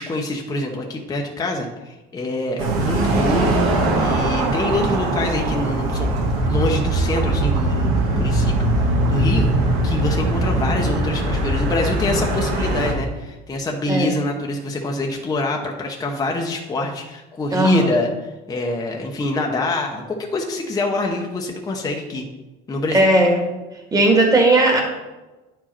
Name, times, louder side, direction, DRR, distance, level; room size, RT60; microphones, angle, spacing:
voice 1, 0.0-6.1 6.5-8.7 9.1-9.5 9.8-22.2 22.7-23.1, left 2 dB, 15° left, 1 dB, 0.8 m, -25 dB
sound 1, 2.6-12.9, right 2 dB, 80° right, 2.0 m, -20 dB
voice 2, 17.5-17.9 22.9-23.4 23.9-24.8, right 2 dB, 15° right, 1 dB, 1.7 m, -16 dB
10.0 x 4.8 x 4.4 m, 1.1 s
cardioid pair, 140°, 21 cm